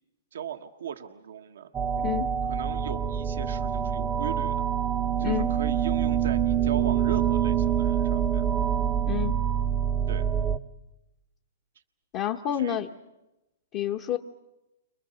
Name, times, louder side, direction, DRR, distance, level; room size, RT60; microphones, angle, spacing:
voice 1, 0.3-1.7 2.4-4.6 5.2-8.5 10.1-10.3 12.5-12.8, right 9 dB, 75° right, 5 dB, 1.3 m, -38 dB
sound 1, 1.7-10.6, right 8 dB, 20° right, 0.8 m, -26 dB
voice 2, 2.0-2.4 5.2-5.5 9.1-9.3 12.1-12.9 13.7-14.2, left 11 dB, 35° left, 2 dB, 1.2 m, -29 dB
30.0 x 25.5 x 6.5 m, 0.98 s
hypercardioid pair, 140°, 0 cm